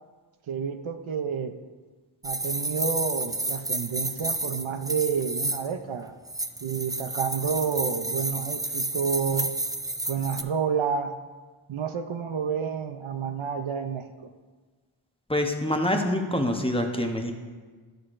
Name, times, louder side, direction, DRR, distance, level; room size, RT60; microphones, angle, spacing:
voice 1, 0.5-1.5 2.2-6.1 6.6-9.5 10.1-11.1 11.7-14.3, right 6 dB, 75° right, 7 dB, 0.6 m, -29 dB
sound 1, 2.2-5.7 6.3-10.4, right 2 dB, 10° right, 0.3 m, -31 dB
voice 2, 15.3-17.3, left 1 dB, 10° left, 3 dB, 0.8 m, -26 dB
11.5 x 6.4 x 2.5 m, 1.4 s
wide cardioid pair, 50°, 49 cm